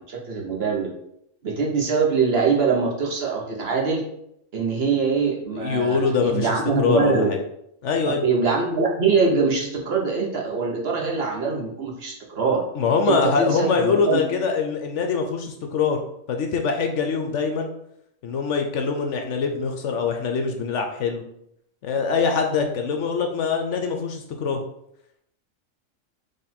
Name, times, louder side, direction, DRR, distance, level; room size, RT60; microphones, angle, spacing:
voice 1, 0.1-0.9 1.4-4.0 4.5-7.3 8.2-12.6 13.0-14.2, right 4 dB, 50° right, -1 dB, 1.0 m, -23 dB
voice 2, 5.6-7.4 7.8-8.2 12.7-16.0 16.3-17.7 18.2-21.2 21.8-24.6, left 5 dB, 65° left, 4 dB, 0.9 m, -23 dB
4.1 x 3.1 x 4.2 m, 0.76 s
omnidirectional pair, 1.4 m